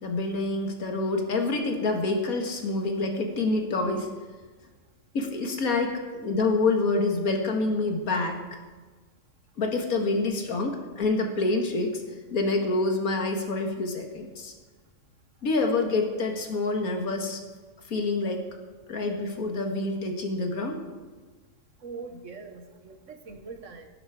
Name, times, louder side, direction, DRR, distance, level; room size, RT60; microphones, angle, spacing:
voice 1, 0.0-4.1 5.1-5.9 6.2-8.4 9.6-12.0 12.3-14.5 15.4-17.4 17.9-18.5 18.9-20.8, left 3 dB, 85° left, 3 dB, 2.1 m, -27 dB
voice 2, 21.8-23.9, right 4 dB, 60° right, 6 dB, 1.6 m, -42 dB
16.0 x 11.0 x 4.9 m, 1.3 s
omnidirectional pair, 1.5 m